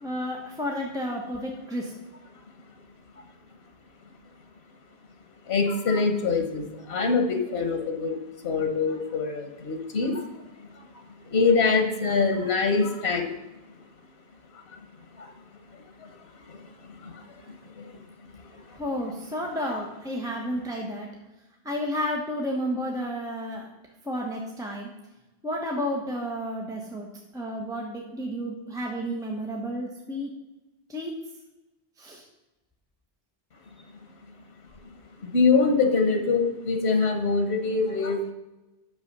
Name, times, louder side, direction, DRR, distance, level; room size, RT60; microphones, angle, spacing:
voice 1, 0.0-1.9 18.7-21.1 21.6-23.7 24.0-24.9 25.4-30.3 30.9-31.1 32.0-32.3, equal, 5° right, -1 dB, 1.1 m, -31 dB
voice 2, 5.5-8.2 8.4-10.1 11.3-13.3 19.7-19.8 35.3-38.3, left 4 dB, 90° left, 5 dB, 1.3 m, -24 dB
8.9 x 6.7 x 5.4 m, 1.0 s
omnidirectional pair, 1.0 m